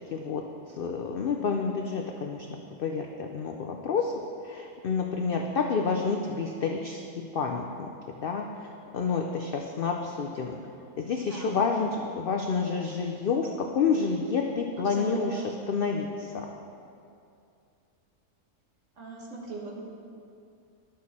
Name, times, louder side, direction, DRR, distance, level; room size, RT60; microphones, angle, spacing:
voice 1, 0.1-0.4 0.7-2.5 2.8-4.1 4.4-7.0 7.3-7.6 8.2-8.4 8.9-10.6 11.0-15.4 15.7-16.5, left 5 dB, 75° left, 2 dB, 0.5 m, -29 dB
voice 2, 11.2-11.6 14.8-15.5 19.0-19.8, right 2 dB, 55° right, -2 dB, 1.6 m, -38 dB
11.5 x 6.3 x 4.1 m, 2.5 s
omnidirectional pair, 1.6 m